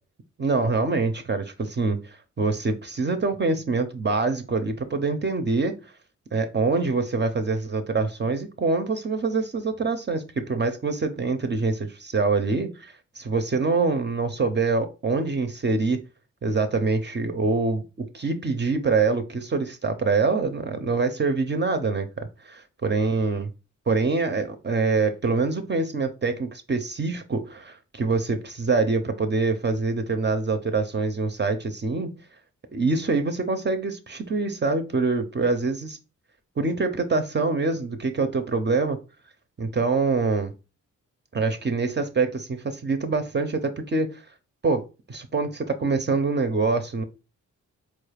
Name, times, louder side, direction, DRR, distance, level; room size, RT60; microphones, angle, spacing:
voice 1, 0.4-5.8 6.3-16.0 16.4-23.5 23.9-32.1 32.7-36.0 36.6-39.0 39.6-40.5 41.3-44.2 44.6-47.0, right 3 dB, 35° right, 7 dB, 0.5 m, -25 dB
4.2 x 2.3 x 3.3 m, 0.30 s
cardioid pair, 85°, 32 cm